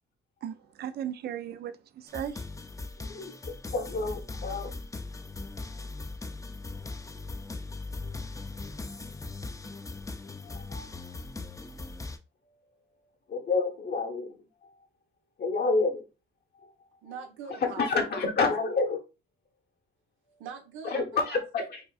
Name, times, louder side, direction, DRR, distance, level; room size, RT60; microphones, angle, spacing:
voice 1, 0.4-2.4, right 10 dB, 55° right, 0.4 m, -36 dB
sound 1, 2.1-12.2, left 3 dB, 15° left, 0.4 m, -39 dB
voice 2, 3.0-4.7 10.4-10.9 13.3-14.3 15.4-16.0 16.6-16.7 17.6-19.0 20.9-21.8, left 4 dB, 55° left, 0.9 m, -29 dB
voice 3, 17.0-18.1 20.4-21.0 21.3-21.7, right 6 dB, 85° right, 0.8 m, -42 dB
4.8 x 2.5 x 2.3 m
cardioid pair, 90°, 20 cm